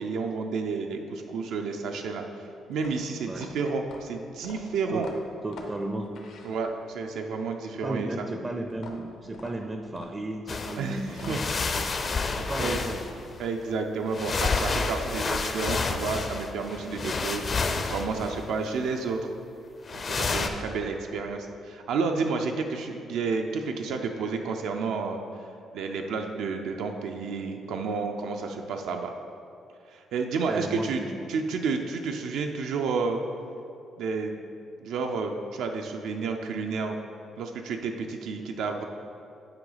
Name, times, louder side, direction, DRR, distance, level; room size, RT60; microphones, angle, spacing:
voice 1, 0.0-2.4 2.7-5.1 6.4-8.1 10.8-11.8 12.6-12.8 13.4-17.4 17.9-19.2 19.9-25.2 25.7-29.1 29.9-31.0 31.3-33.2 34.0-34.4 34.8-37.0 37.4-38.8, right 4 dB, 85° right, 3 dB, 0.5 m, -31 dB
sound 1, 2.7-7.0 8.7-11.7, left 3 dB, 80° left, 0.8 m, -47 dB
voice 2, 5.4-6.1 7.8-13.0 18.8-18.9 20.3-20.5 30.4-31.2, right 2 dB, 20° right, 4 dB, 0.4 m, -35 dB
sound 2, 10.5-10.8 11.1-13.4 14.1-18.7 19.9-20.5, left 4 dB, 35° left, 0.5 m, -29 dB
8.9 x 4.8 x 3.9 m, 2.6 s
cardioid pair, 135°, 0 cm